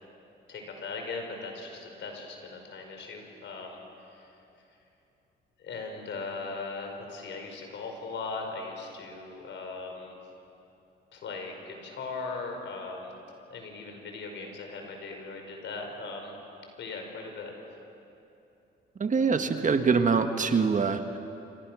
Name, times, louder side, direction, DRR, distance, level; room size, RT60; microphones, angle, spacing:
voice 1, 0.5-3.8 4.1-4.3 5.6-10.2 11.1-13.1 13.5-16.4 16.8-17.5, left 3 dB, 70° left, 3 dB, 5.5 m, -39 dB
voice 2, 19.0-21.2, right 5 dB, 40° right, 7 dB, 1.6 m, -24 dB
27.5 x 27.0 x 6.4 m, 2.8 s
cardioid pair, 90°, 20 cm